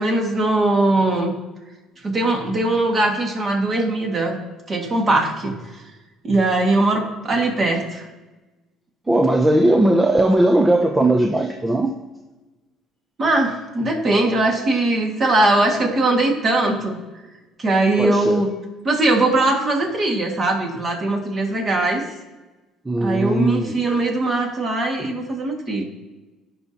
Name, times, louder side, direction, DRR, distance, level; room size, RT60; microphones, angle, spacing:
voice 1, 0.0-1.4 2.0-4.4 4.7-5.6 6.2-8.0 13.2-17.0 17.6-18.5 18.8-22.1 23.0-25.8, right 2 dB, 30° right, 2 dB, 1.8 m, -20 dB
voice 2, 9.1-11.9 18.0-18.5 22.9-23.8, right 1 dB, 10° right, 4 dB, 0.5 m, -18 dB
16.0 x 5.5 x 2.8 m, 1.1 s
cardioid pair, 135°, 0 cm